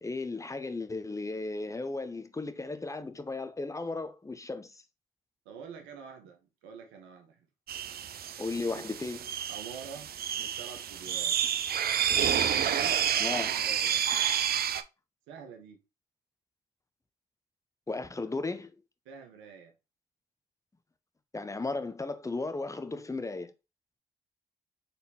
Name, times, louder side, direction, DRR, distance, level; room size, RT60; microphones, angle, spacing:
voice 1, 0.0-4.8 8.4-9.2 13.2-13.5 17.9-18.7 21.3-23.5, left 3 dB, 15° left, 0.7 m, -35 dB
voice 2, 5.4-7.4 8.7-8.8 9.5-10.1 10.4-11.4 12.3-13.0 13.3-14.0 15.3-15.8 19.0-19.7, right 6 dB, 85° right, 1.0 m, -46 dB
sound 1, 7.7-14.8, right 9 dB, 55° right, 0.5 m, -29 dB
4.2 x 3.5 x 2.8 m
hypercardioid pair, 50°, 19 cm